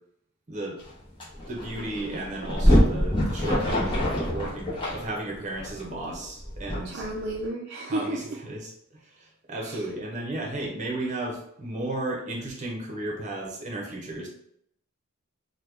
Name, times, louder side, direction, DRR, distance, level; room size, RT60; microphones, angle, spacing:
voice 1, 0.5-0.8 1.5-7.0 7.9-8.7 9.2-14.3, right 2 dB, 35° right, 0 dB, 0.8 m, -34 dB
sound 1, 0.8-0.9 1.2-7.4, equal, 25° left, 0.8 m, -25 dB
voice 2, 6.8-8.4 9.6-9.9, right 2 dB, 50° right, -2 dB, 0.4 m, -33 dB
2.9 x 2.2 x 3.5 m, 0.72 s
head